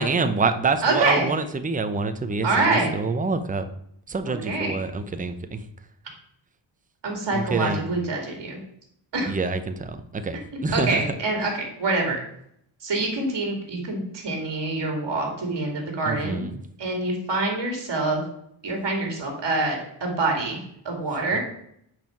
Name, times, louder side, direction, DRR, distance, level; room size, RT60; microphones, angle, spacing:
voice 1, 0.0-3.7 4.1-5.6 7.3-7.9 9.3-11.0 16.1-16.6 21.3-21.4, right 4 dB, 15° right, 8 dB, 0.6 m, -26 dB
voice 2, 0.8-1.3 2.4-2.9 4.3-4.8 7.0-8.6 9.1-9.3 10.7-12.2 12.8-16.5 16.8-18.2 18.6-21.4, right 2 dB, 60° right, 2 dB, 2.9 m, -26 dB
8.9 x 4.5 x 5.8 m, 0.71 s
wide cardioid pair, 155°, 48 cm